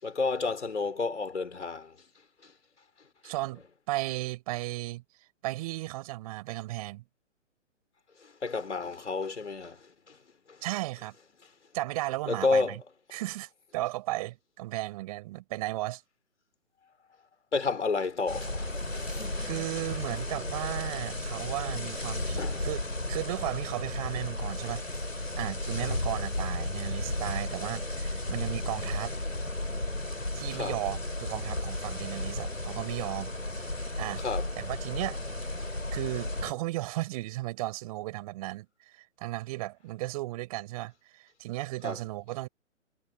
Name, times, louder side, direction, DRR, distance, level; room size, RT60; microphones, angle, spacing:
voice 1, 0.0-2.0 2.4-2.5 3.2-3.3 8.2-10.2 10.5-10.6 12.3-12.8 17.5-19.5 22.4-22.6 25.3-25.4 30.6-30.8 34.2-34.5 41.8-42.0, left 4 dB, 65° left, 5.5 m, -31 dB
voice 2, 3.2-5.0 5.4-7.0 10.6-11.1 11.7-12.8 13.1-16.0 19.4-22.8 23.1-24.8 25.4-29.1 30.3-33.7 34.0-34.2 34.6-35.2 35.6-42.5, right 18 dB, 30° right, 6.2 m, -35 dB
sound 1, 18.3-36.5, left 1 dB, 85° left, 3.7 m, -34 dB
figure-of-eight pair, 130°, 38 cm